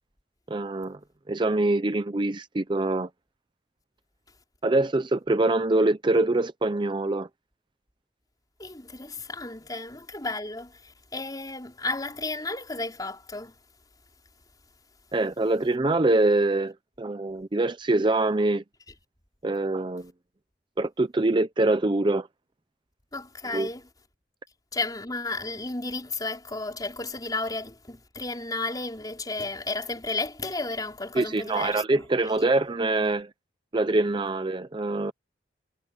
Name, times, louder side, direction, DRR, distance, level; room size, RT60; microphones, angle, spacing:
voice 1, 0.5-1.0 1.3-3.1 4.6-7.3 15.1-18.6 19.4-20.1 20.8-22.3 23.5-23.7 31.1-33.3 33.7-35.1, right 2 dB, 25° right, 0.6 m, -24 dB
voice 2, 8.6-13.5 23.1-23.8 24.7-32.0, left 3 dB, 20° left, 4.7 m, -33 dB
head